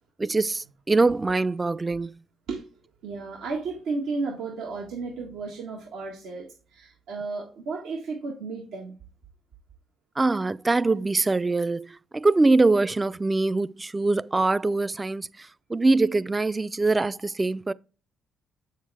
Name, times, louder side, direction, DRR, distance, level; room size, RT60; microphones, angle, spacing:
voice 1, 0.2-2.2 10.2-17.7, right 3 dB, 25° right, 0.4 m, -23 dB
voice 2, 3.0-8.9, right 4 dB, 80° right, 1.6 m, -33 dB
7.9 x 6.6 x 3.4 m
supercardioid pair, 70°, 0 cm